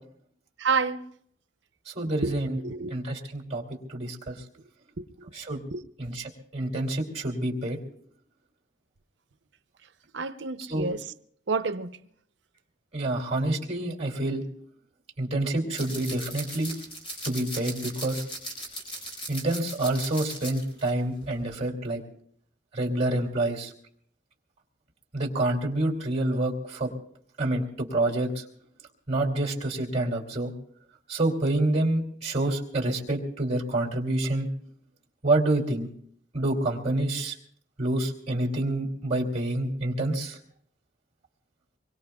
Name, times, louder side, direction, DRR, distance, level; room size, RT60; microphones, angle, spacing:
voice 1, 0.6-1.0 2.2-2.4 2.6-3.0 5.0-5.3 5.7-5.8 10.1-11.1 11.5-12.0, right 4 dB, 75° right, 0.7 m, -29 dB
voice 2, 1.9-2.6 2.9-3.6 3.9-4.3 5.3-5.6 6.0-7.8 10.7-10.9 12.9-14.4 15.2-16.7 17.2-18.2 19.3-22.0 22.7-23.7 25.1-26.9 27.4-28.4 29.1-30.5 31.1-34.5 35.2-35.9 36.3-37.3 37.8-40.4, right 1 dB, 35° right, 2.7 m, -27 dB
sound 1, 15.8-20.9 21.2-21.4, right 1 dB, 30° left, 5.0 m, -38 dB
25.0 x 22.5 x 2.3 m
head